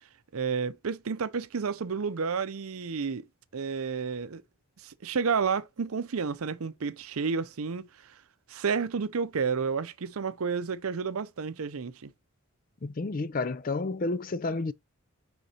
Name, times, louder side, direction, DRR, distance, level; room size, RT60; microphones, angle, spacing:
voice 1, 0.3-3.2 3.5-4.4 4.8-8.2 8.5-12.1, right 5 dB, 75° right, 0.6 m, -31 dB
voice 2, 12.8-14.7, left 3 dB, 40° left, 0.4 m, -30 dB
6.4 x 5.2 x 2.9 m
head